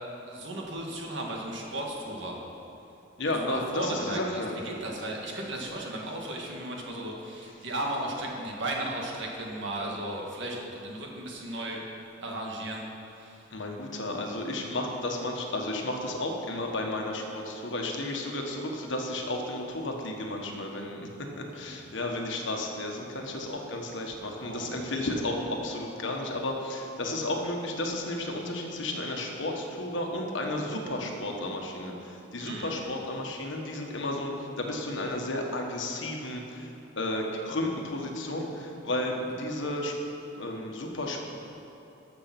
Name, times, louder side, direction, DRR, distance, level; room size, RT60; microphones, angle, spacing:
voice 1, 0.3-2.4 3.2-11.8 12.2-12.9 13.1-13.4 21.6-21.7 24.5-25.2 32.4-32.7, right 1 dB, 65° right, -1 dB, 1.8 m, -35 dB
voice 2, 3.2-4.6 13.5-21.1 21.4-36.7 37.0-39.9 40.3-41.3, left 1 dB, 65° left, 1 dB, 1.4 m, -33 dB
13.5 x 6.8 x 6.0 m, 2.9 s
head